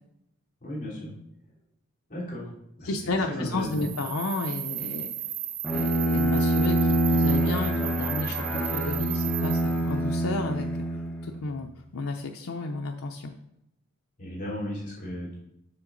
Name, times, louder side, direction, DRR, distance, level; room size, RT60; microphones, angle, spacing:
voice 1, 0.6-1.1 2.1-2.5 2.8-2.9 3.3-3.9 14.2-15.3, left 1 dB, 40° left, -6 dB, 3.2 m, -35 dB
voice 2, 2.8-5.1 5.7-10.7 10.9-13.3, left 2 dB, 85° left, 3 dB, 0.6 m, -32 dB
sound 1, 3.6-9.9, right 12 dB, 70° right, 0.9 m, -35 dB
Bowed string instrument, 5.6-11.5, right 1 dB, 10° left, 1.0 m, -26 dB
7.6 x 6.4 x 3.9 m, 0.82 s
head